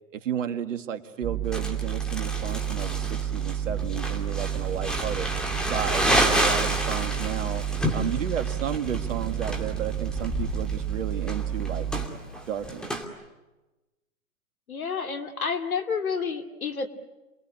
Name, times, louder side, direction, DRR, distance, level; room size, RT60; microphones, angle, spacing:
voice 1, 0.1-5.3 5.6-7.6 7.9-11.9 12.5-13.0, right 9 dB, 60° right, 7 dB, 2.1 m, -33 dB
sound 1, 1.2-12.1, right 9 dB, 15° right, 0.9 m, -30 dB
Crumpling crinkling, 1.5-13.0, equal, ahead, 2.7 m, -30 dB
voice 2, 14.7-16.9, left 5 dB, 80° left, 7 dB, 2.8 m, -29 dB
28.0 x 21.5 x 9.9 m, 1.1 s
hypercardioid pair, 135°, 42 cm